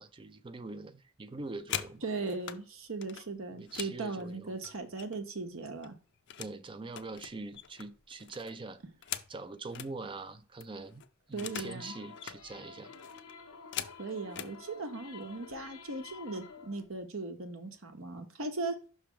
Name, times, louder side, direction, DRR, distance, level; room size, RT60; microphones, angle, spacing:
voice 1, 0.0-2.0 3.5-4.6 6.4-8.8 9.3-11.0 11.3-12.9, right 3 dB, 25° right, 0.4 m, -43 dB
sound 1, 1.3-2.6 3.0-5.3 5.6-6.6 6.9-9.9 10.3-10.4 10.6-11.8 12.1-12.4 12.9-14.6 15.4-15.5 15.9-16.2 16.5-17.0, left 10 dB, 55° left, 0.5 m, -43 dB
voice 2, 2.0-5.9 11.3-11.9 14.0-18.8, right 3 dB, 65° right, 1.1 m, -38 dB
sound 2, 11.4-16.8, left 5 dB, 90° left, 0.9 m, -50 dB
5.9 x 3.3 x 5.7 m
head